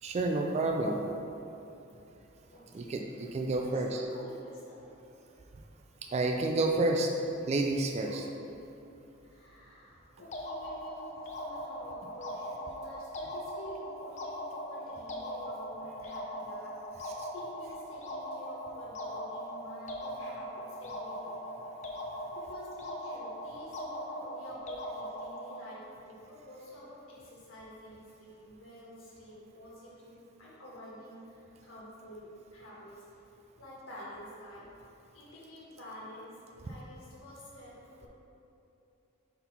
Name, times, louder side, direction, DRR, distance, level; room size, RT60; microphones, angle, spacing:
voice 1, 0.0-1.1 2.7-4.1 6.1-7.1 7.5-8.2 17.0-17.3, right 2 dB, 30° right, 2 dB, 0.3 m, -30 dB
voice 2, 2.5-3.0 3.5-4.8 5.2-5.4 8.1-8.6 9.2-21.4 22.3-33.0 33.6-34.7 35.1-38.1, equal, 85° left, -7 dB, 1.4 m, -49 dB
sound 1, 10.3-25.7, equal, 35° left, 0.6 m, -40 dB
4.5 x 3.9 x 5.4 m, 2.8 s
head